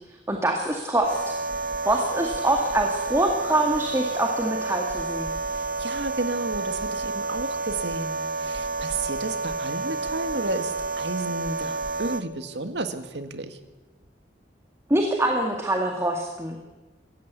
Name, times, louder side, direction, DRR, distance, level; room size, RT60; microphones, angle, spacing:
voice 1, 0.3-1.4 1.9-5.4 14.9-16.6, right 1 dB, 15° right, 2 dB, 2.0 m, -24 dB
sound 1, 1.0-12.2, right 3 dB, 50° right, 1.1 m, -30 dB
voice 2, 5.5-13.6, right 2 dB, 75° right, 8 dB, 2.0 m, -32 dB
27.0 x 14.5 x 8.3 m, 1.2 s
head